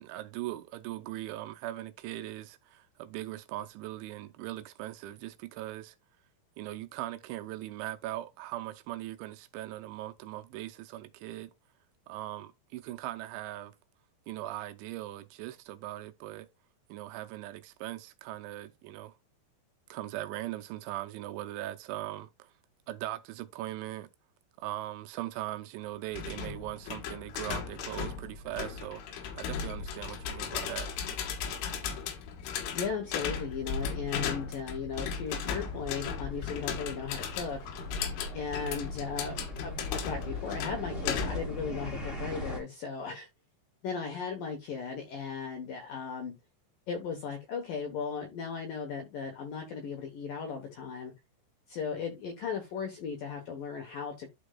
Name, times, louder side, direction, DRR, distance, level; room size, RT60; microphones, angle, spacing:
voice 1, 0.0-6.0 6.6-11.5 12.1-13.7 14.3-16.5 16.9-19.1 19.9-22.5 22.9-24.1 24.6-30.9, right 15 dB, 80° right, 2.9 m, -40 dB
sound 1, 26.1-41.6, left 7 dB, 90° left, 4.0 m, -36 dB
voice 2, 32.7-37.6 38.3-43.3 43.8-46.3 46.9-51.1 51.7-54.3, left 6 dB, 75° left, 2.1 m, -37 dB
sound 2, 35.6-42.6, left 1 dB, 25° left, 1.1 m, -40 dB
12.0 x 5.0 x 2.3 m
omnidirectional pair, 5.5 m